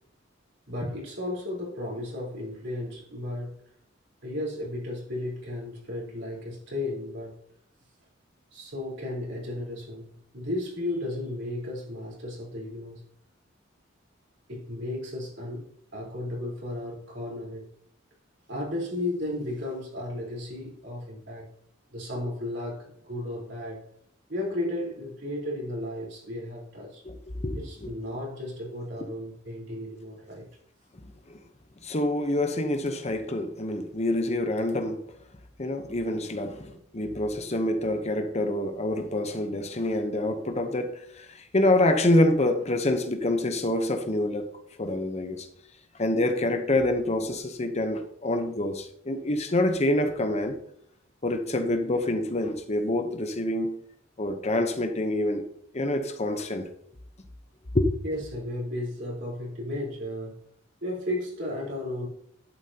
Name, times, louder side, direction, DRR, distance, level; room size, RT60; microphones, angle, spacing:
voice 1, 0.7-3.6 4.2-7.3 8.5-13.0 14.5-17.7 18.5-21.5 21.9-23.8 24.3-27.0 27.6-30.5 58.0-60.4 60.8-62.1, left 1 dB, 65° right, -3 dB, 4.1 m, -34 dB
voice 2, 27.0-27.9 31.3-31.4 31.8-35.0 35.6-40.9 41.2-44.5 44.8-45.5 46.0-50.6 51.2-53.8 54.2-55.4 55.7-56.7 57.7-57.9, left 1 dB, 35° left, 7 dB, 0.9 m, -26 dB
11.0 x 9.0 x 2.9 m, 0.68 s
head